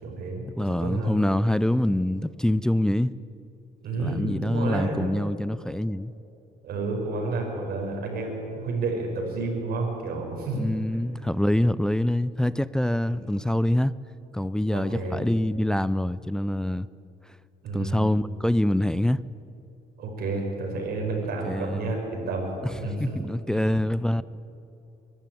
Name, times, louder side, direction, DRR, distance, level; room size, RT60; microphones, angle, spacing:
voice 1, 0.0-0.5 0.8-1.1 3.8-5.0 6.6-10.6 13.1-13.2 14.7-15.2 17.6-18.0 20.0-22.5 22.7-23.3 23.7-23.8, right 3 dB, 65° right, 5.8 m, -30 dB
voice 2, 0.6-3.1 4.0-6.1 10.5-13.9 14.3-16.9 17.3-17.4 17.7-19.2 21.4-21.9 22.8-24.2, left 1 dB, 5° left, 0.4 m, -25 dB
24.0 x 13.0 x 9.4 m
cardioid pair, 110°, 17 cm